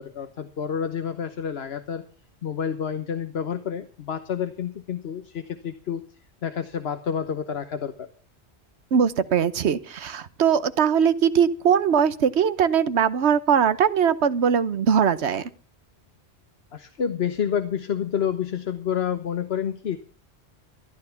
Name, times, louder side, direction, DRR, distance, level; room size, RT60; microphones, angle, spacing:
voice 1, 0.0-2.0 2.4-6.0 6.4-8.1 16.7-20.0, left 8 dB, 70° left, 9 dB, 1.2 m, -29 dB
voice 2, 8.9-15.4, right 7 dB, 85° right, 14 dB, 1.2 m, -21 dB
14.0 x 12.0 x 5.7 m, 0.40 s
omnidirectional pair, 1.1 m